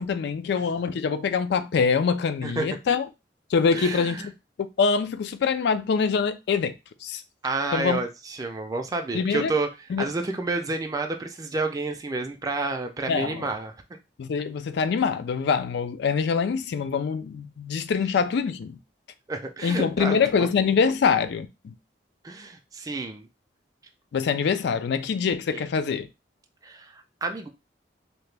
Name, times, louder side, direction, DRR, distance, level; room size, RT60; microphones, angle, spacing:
voice 1, 0.0-3.1 3.5-4.2 4.8-6.7 7.0-7.2 7.7-8.0 9.1-9.5 9.9-10.0 13.1-13.5 14.2-18.8 19.6-21.7 24.1-26.1, left 5 dB, 65° left, 0.3 m, -24 dB
voice 2, 3.7-4.3 7.4-9.7 10.0-13.7 19.3-20.5 22.2-23.3 25.5-25.7 26.6-27.5, right 3 dB, 20° right, 0.4 m, -30 dB
2.8 x 2.2 x 3.2 m
head